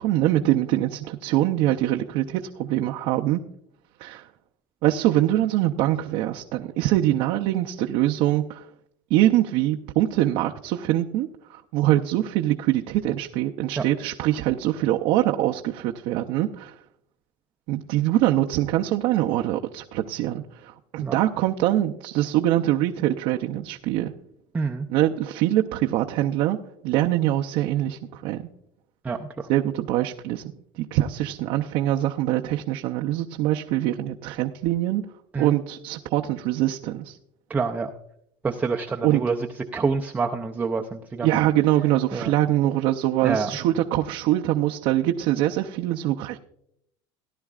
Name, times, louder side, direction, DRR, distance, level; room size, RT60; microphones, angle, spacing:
voice 1, 0.0-3.4 4.0-4.3 4.8-8.7 9.1-16.7 17.7-24.1 24.9-26.6 26.8-28.5 29.5-35.0 35.4-37.2 39.0-39.2 41.2-46.4, right 14 dB, 55° right, 2 dB, 0.6 m, -23 dB
voice 2, 24.5-24.9 29.0-29.5 35.3-35.5 37.5-37.9 38.4-39.4 39.7-41.3 42.1-42.3 43.2-43.5, right 4 dB, 15° right, 2 dB, 0.5 m, -27 dB
17.5 x 11.0 x 2.4 m, 0.75 s
cardioid pair, 145°, 12 cm